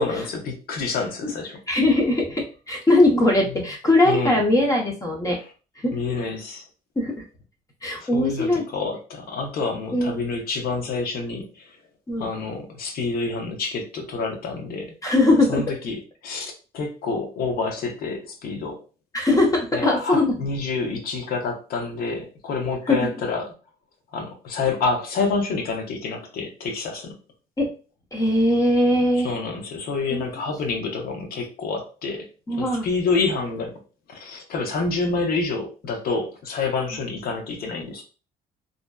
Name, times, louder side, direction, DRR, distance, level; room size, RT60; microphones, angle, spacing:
voice 1, 0.0-1.6 3.5-3.6 4.0-4.4 5.9-6.6 8.0-11.8 12.2-14.9 15.5-18.8 19.7-23.5 24.1-27.1 29.2-32.3 32.6-33.8 34.1-38.0, left 4 dB, 65° left, 0.7 m, -28 dB
voice 2, 1.7-5.4 5.8-6.0 7.0-7.2 7.8-8.6 9.9-10.2 12.1-12.3 15.0-15.6 19.1-20.3 22.9-23.1 27.6-27.7 28.1-29.3 30.1-30.2 32.5-32.9, left 1 dB, 20° left, 0.8 m, -20 dB
2.6 x 2.2 x 2.2 m
cardioid pair, 110°, 17 cm